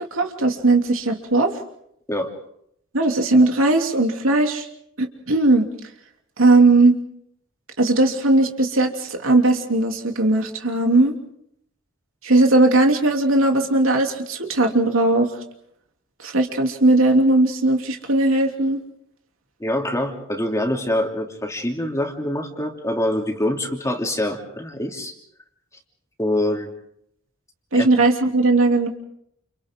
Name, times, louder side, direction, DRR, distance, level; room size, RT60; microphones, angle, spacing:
voice 1, 0.0-1.5 2.9-4.7 5.0-5.7 6.4-6.9 7.8-11.1 12.2-15.3 16.2-18.8 27.7-28.9, right 2 dB, 90° right, 3 dB, 3.1 m, -18 dB
voice 2, 19.6-25.1 26.2-26.7 27.7-27.9, left 1 dB, 15° left, 2 dB, 3.0 m, -25 dB
29.5 x 29.5 x 3.8 m, 0.71 s
head